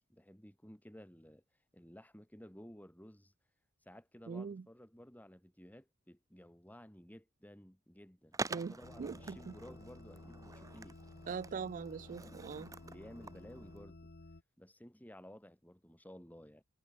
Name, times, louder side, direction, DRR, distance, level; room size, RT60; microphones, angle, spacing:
voice 1, 0.0-1.4 1.7-3.3 3.8-11.0 12.8-14.1 14.6-16.6, equal, 10° left, 3.7 m, -55 dB
voice 2, 4.3-4.6 8.5-8.7 9.0-9.4 11.3-12.7, right 5 dB, 40° right, 0.3 m, -41 dB
Skateboard, 8.3-13.8, right 3 dB, 15° right, 0.8 m, -47 dB
sound 1, 8.8-14.4, left 2 dB, 50° left, 1.2 m, -54 dB
head